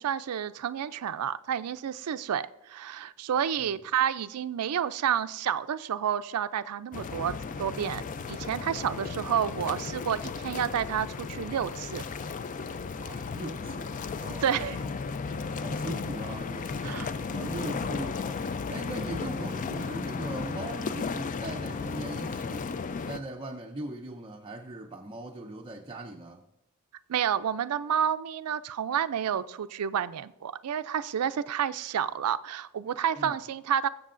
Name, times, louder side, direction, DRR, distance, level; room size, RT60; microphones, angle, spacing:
voice 1, 0.0-7.3 7.6-12.0 14.4-14.8 16.8-17.1 27.1-33.9, right 8 dB, 85° right, 0.4 m, -30 dB
sound 1, 6.9-23.2, left 4 dB, 35° left, 0.4 m, -35 dB
voice 2, 13.0-14.5 14.8-14.9 15.6-18.4 18.7-22.7 23.1-26.5 33.2-33.4, right 1 dB, 25° right, 0.5 m, -40 dB
20.0 x 7.4 x 2.5 m
head